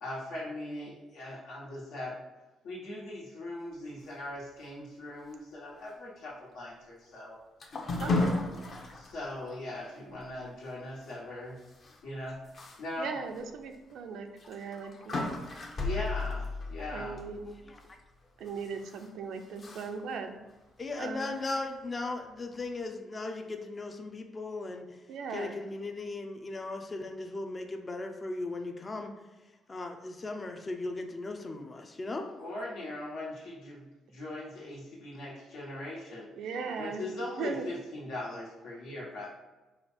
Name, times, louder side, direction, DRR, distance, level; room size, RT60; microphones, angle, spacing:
voice 1, 0.0-2.2 2.6-7.4 8.0-8.5 8.9-11.6 12.0-12.4 12.8-13.1 15.8-17.2 32.4-36.3 36.8-39.3, left 1 dB, 85° left, -5 dB, 1.5 m, -40 dB
sound 1, 7.6-9.1 9.6-9.7 10.1-10.2 11.8-11.9 12.5-12.8 13.3-13.4 14.4-17.6 18.5-19.0 19.6-19.9, left 2 dB, 45° left, 0.8 m, -34 dB
voice 2, 8.0-8.4 13.0-15.3 16.9-17.4 18.4-20.3 21.0-21.3 25.1-25.6 36.4-37.0 37.4-37.7, right 5 dB, 80° right, 6 dB, 0.5 m, -38 dB
voice 3, 17.5-17.8 20.8-24.9 25.3-29.1 29.7-32.3, left 2 dB, 30° left, 4 dB, 0.5 m, -37 dB
4.9 x 2.4 x 4.4 m, 1.1 s
cardioid pair, 90°, 0 cm